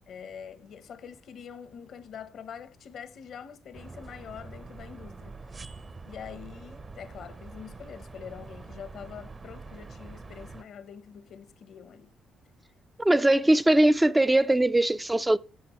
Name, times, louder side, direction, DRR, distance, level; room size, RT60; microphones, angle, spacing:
voice 1, 0.1-5.3 6.0-12.1 13.2-13.3, left 7 dB, 65° left, 0.9 m, -44 dB
sound 1, 3.7-10.6, right 3 dB, 35° right, 0.7 m, -45 dB
voice 2, 13.0-15.4, right 1 dB, 10° right, 0.4 m, -21 dB
14.0 x 7.2 x 3.0 m
cardioid pair, 90°, 0 cm